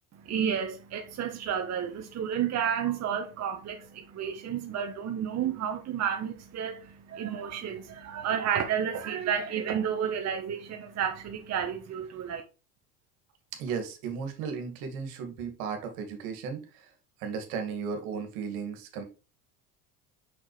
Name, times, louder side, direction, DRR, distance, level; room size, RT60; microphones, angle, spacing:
voice 1, 0.2-12.4, right 8 dB, 35° right, 1.0 m, -31 dB
voice 2, 13.5-16.9 17.2-19.0, right 6 dB, 65° right, 2.1 m, -35 dB
6.2 x 6.0 x 3.2 m
hypercardioid pair, 75°, 44 cm